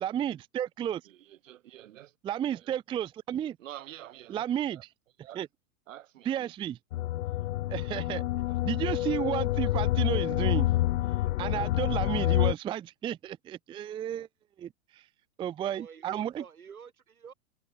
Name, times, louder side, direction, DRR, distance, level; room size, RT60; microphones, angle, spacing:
voice 1, 0.0-1.0 2.2-3.6 4.3-4.8 5.4-5.5 6.3-6.8 7.7-8.2 8.6-10.7 11.4-14.3 14.6-15.0 15.4-16.4, right 10 dB, 10° right, 0.5 m, -32 dB
voice 2, 1.0-2.2 2.6-2.7 3.6-4.4 4.7-4.8 5.2-5.4 5.9-6.5, right 13 dB, 65° right, 5.5 m, -48 dB
sound 1, 6.9-12.5, left 15 dB, 60° left, 0.8 m, -28 dB
voice 3, 15.6-17.3, right 7 dB, 85° right, 3.1 m, -49 dB
hypercardioid pair, 110°, 42 cm